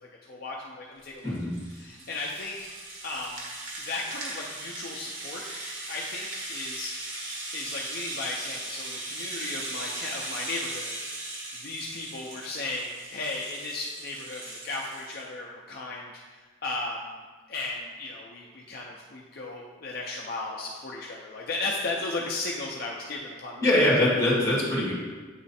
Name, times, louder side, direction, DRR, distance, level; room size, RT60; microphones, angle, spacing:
voice 1, 0.0-1.3 1.7-2.7 3.0-3.5 3.8-5.4 5.9-11.0 11.5-23.7, left 2 dB, 50° left, -2 dB, 0.5 m, -36 dB
Rattle (instrument), 1.0-15.2, right 2 dB, 80° right, 1.3 m, -38 dB
voice 2, 23.6-24.9, left 1 dB, 15° left, -5 dB, 1.6 m, -22 dB
7.9 x 3.1 x 4.1 m, 1.4 s
head